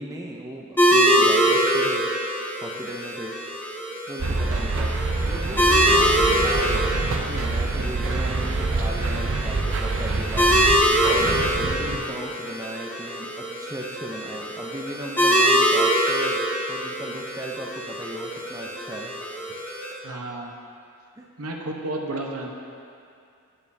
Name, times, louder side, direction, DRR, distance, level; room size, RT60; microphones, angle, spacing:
voice 1, 0.0-2.3 2.6-3.4 4.1-4.9 5.2-10.5 11.1-16.4 16.7-19.1 19.5-19.6 21.2-21.3, right 1 dB, 15° right, -1 dB, 0.5 m, -36 dB
sound 1, 0.8-19.9, equal, 10° left, 0.9 m, -24 dB
sound 2, 4.2-12.0, right 3 dB, 60° right, 0.6 m, -26 dB
voice 2, 11.8-12.1 20.0-20.5 21.4-22.5, right 2 dB, 75° right, 1 dB, 0.9 m, -32 dB
16.0 x 5.4 x 2.7 m, 2.5 s
head